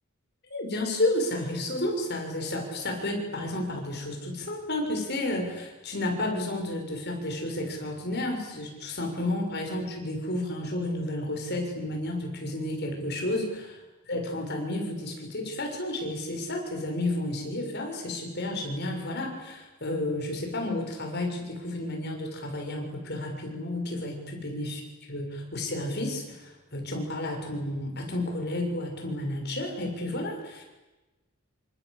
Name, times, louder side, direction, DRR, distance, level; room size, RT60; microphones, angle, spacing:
voice 1, 0.5-13.7 14.1-24.8 25.1-30.6, left 1 dB, 50° left, 2 dB, 6.7 m, -31 dB
27.5 x 26.0 x 8.4 m, 1.1 s
head